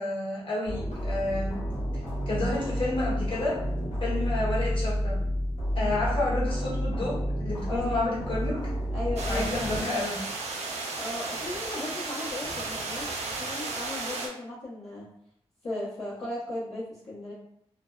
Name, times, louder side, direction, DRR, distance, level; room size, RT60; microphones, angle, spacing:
voice 1, 0.0-1.7 1.9-3.6 4.0-5.2 5.7-8.6 9.3-10.2, left 2 dB, 50° left, -7 dB, 1.2 m, -30 dB
sound 1, 0.7-9.8, equal, 90° left, 0.7 m, -30 dB
voice 2, 7.7-8.0 8.9-9.5 11.0-13.1 13.4-15.1 15.6-17.3, left 1 dB, 70° left, -11 dB, 0.9 m, -36 dB
sound 2, 9.2-14.3, right 3 dB, 75° right, 0.5 m, -34 dB
2.5 x 2.1 x 2.3 m, 0.70 s
cardioid pair, 65°, 11 cm